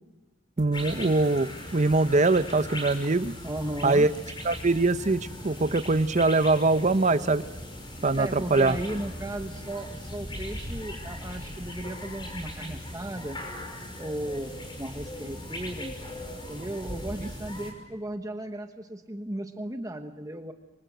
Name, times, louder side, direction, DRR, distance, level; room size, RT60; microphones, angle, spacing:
sound 1, 0.6-5.9, equal, 70° left, 6.9 m, -50 dB
voice 1, 0.6-3.3 3.8-4.1 4.4-7.4 8.0-8.8, right 3 dB, 40° right, 13 dB, 0.9 m, -23 dB
sound 2, 0.7-17.7, left 1 dB, 25° left, 6.0 m, -39 dB
voice 2, 3.4-4.1 8.2-13.4 14.0-14.5 14.8-16.0 16.5-20.5, right 1 dB, 20° right, 6 dB, 1.2 m, -35 dB
27.0 x 25.0 x 8.0 m, 1.3 s
head